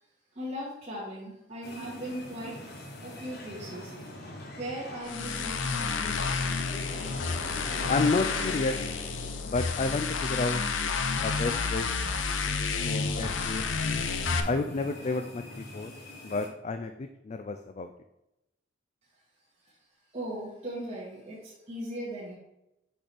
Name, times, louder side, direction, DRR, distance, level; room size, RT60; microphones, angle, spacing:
voice 1, 0.4-2.6 3.0-3.9 4.6-6.5 20.1-22.4, equal, 35° right, -7 dB, 1.8 m, -38 dB
sound 1, 1.6-16.5, left 1 dB, 60° left, 1.3 m, -43 dB
sound 2, 5.0-14.4, left 5 dB, 85° left, 0.7 m, -30 dB
voice 2, 7.9-8.7 9.5-10.6 11.2-11.9 12.8-13.6 14.5-15.9 16.2-17.9, left 3 dB, 35° left, 7 dB, 0.3 m, -30 dB
6.2 x 6.0 x 3.4 m, 0.89 s
head